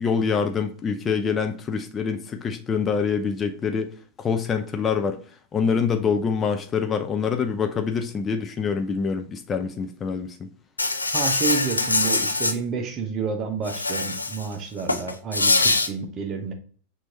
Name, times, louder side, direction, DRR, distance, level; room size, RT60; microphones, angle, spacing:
voice 1, 0.0-3.9 4.2-5.2 5.5-10.5, left 6 dB, 20° left, 0.4 m, -25 dB
Insect, 10.8-12.5 13.7-14.5 14.8-15.9, left 3 dB, 80° left, 0.4 m, -23 dB
voice 2, 11.1-16.5, right 5 dB, 30° right, 0.9 m, -29 dB
6.1 x 2.7 x 2.9 m
figure-of-eight pair, 90°, 0 cm